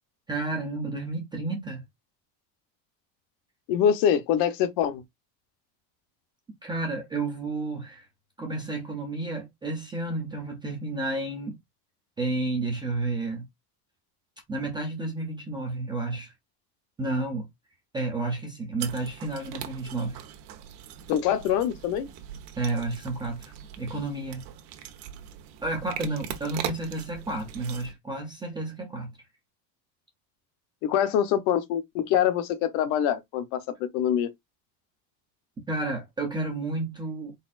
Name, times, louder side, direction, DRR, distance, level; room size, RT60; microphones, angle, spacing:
voice 1, 0.3-1.8 6.6-8.1 8.4-11.6 12.2-13.4 14.5-16.3 17.0-17.5 17.9-20.2 22.6-24.4 25.6-29.1 35.7-37.3, right 2 dB, 10° right, 0.4 m, -31 dB
voice 2, 3.7-5.0 21.1-22.1 30.8-33.6 33.9-34.3, left 9 dB, 50° left, 0.8 m, -24 dB
sound 1, 18.8-27.9, right 10 dB, 65° right, 1.1 m, -40 dB
4.4 x 4.2 x 2.4 m
cardioid pair, 180°, 46 cm